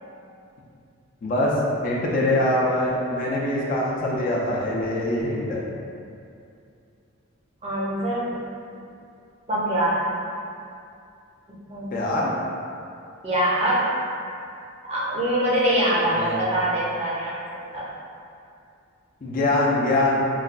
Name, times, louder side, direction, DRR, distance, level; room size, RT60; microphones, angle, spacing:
voice 1, 1.2-1.5 1.8-5.6 11.9-12.3 16.1-16.4 19.2-20.2, left 1 dB, 40° left, -4 dB, 0.4 m, -23 dB
voice 2, 7.6-8.3 9.5-10.0 11.7-12.0 13.2-14.0 14.8-17.9, right 1 dB, 30° right, -6 dB, 0.6 m, -24 dB
3.9 x 2.2 x 2.5 m, 2.5 s
head